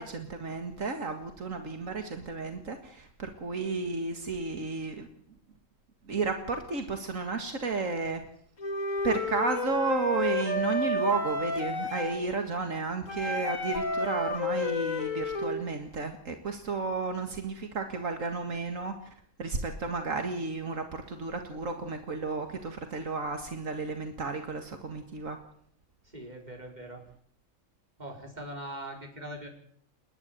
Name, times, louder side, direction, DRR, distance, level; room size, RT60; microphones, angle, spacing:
voice 1, 0.0-5.1 6.1-8.2 9.0-19.0 19.4-25.4, right 4 dB, 75° right, 6 dB, 2.3 m, -32 dB
Wind instrument woodwind instrument, 8.6-12.2 13.1-15.6, left 3 dB, 75° left, 2.9 m, -31 dB
voice 2, 26.0-27.0 28.0-29.5, right 1 dB, 35° right, 2 dB, 5.3 m, -41 dB
29.5 x 11.0 x 9.1 m, 0.63 s
omnidirectional pair, 1.4 m